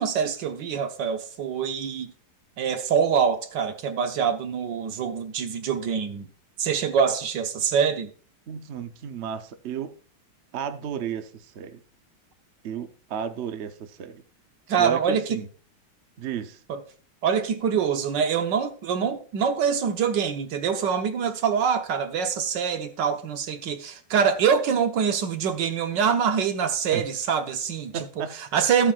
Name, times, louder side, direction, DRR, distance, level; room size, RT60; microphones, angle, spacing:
voice 1, 0.0-2.1 2.6-6.3 6.6-8.1 14.7-15.2 16.7-16.8 17.2-28.0 28.5-28.9, right 7 dB, 65° right, 1.5 m, -25 dB
voice 2, 8.5-9.9 10.5-11.8 12.6-14.2 14.8-15.5 16.2-16.6 26.9-27.1 27.9-28.3, right 7 dB, 80° right, 0.6 m, -33 dB
13.5 x 8.6 x 2.5 m
omnidirectional pair, 2.3 m